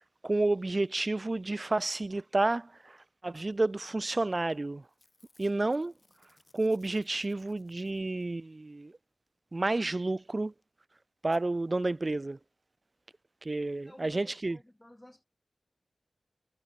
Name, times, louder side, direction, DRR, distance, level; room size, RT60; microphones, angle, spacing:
voice 1, 0.2-3.0 3.2-4.8 5.4-5.9 6.5-8.9 9.5-10.5 11.2-12.4 13.4-14.6, right 2 dB, 35° right, 0.4 m, -30 dB
Packing tape duct tape / Tearing, 4.3-4.6 4.8-8.4 10.4-10.5 10.6-10.7 11.3-11.4 12.1-12.2 12.4-12.5, left 2 dB, 40° left, 5.5 m, -67 dB
voice 2, 13.8-15.3, left 1 dB, 15° left, 3.7 m, -54 dB
cardioid pair, 55°, 0 cm